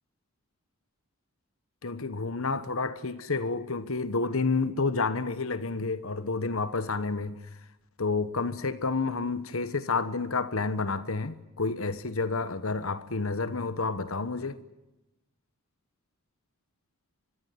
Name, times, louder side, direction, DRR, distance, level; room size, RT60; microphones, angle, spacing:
voice 1, 1.8-7.4 8.0-14.6, left 3 dB, 70° left, 1.2 m, -30 dB
24.5 x 21.5 x 9.4 m
head